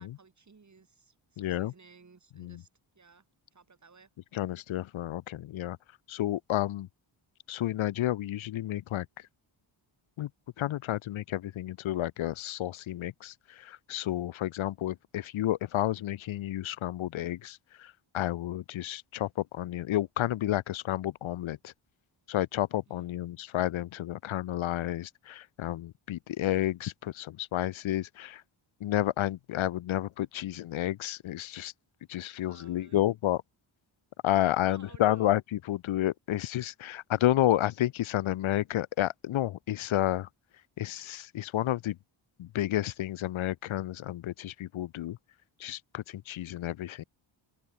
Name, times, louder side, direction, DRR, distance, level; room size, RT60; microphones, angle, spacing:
voice 1, 0.0-2.7 2.9-3.2 3.5-4.1 22.9-23.1 32.5-33.1 34.4-35.3, right 4 dB, 35° right, 6.8 m, -57 dB
voice 2, 1.4-1.7 2.4-2.6 4.3-5.8 6.1-6.9 7.5-9.1 10.2-10.3 10.6-21.7 22.3-28.4 28.8-31.7 32.1-33.4 34.2-40.3 40.8-42.0 42.4-45.2 45.6-47.0, left 13 dB, 80° left, 0.7 m, -31 dB
open air
wide cardioid pair, 135°, 47 cm